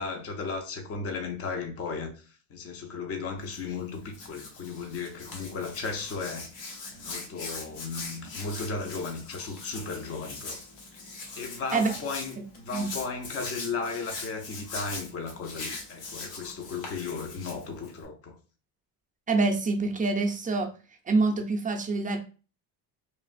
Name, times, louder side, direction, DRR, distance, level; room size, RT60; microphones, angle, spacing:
voice 1, 0.0-6.5 6.9-10.6 11.4-18.4, left 4 dB, 35° left, 0.6 m, -35 dB
Hands, 3.4-18.0, left 3 dB, 75° left, 1.0 m, -41 dB
voice 2, 19.3-20.7 21.1-22.2, right 3 dB, 20° right, 0.5 m, -25 dB
3.2 x 2.4 x 2.4 m
cardioid pair, 105°, 43 cm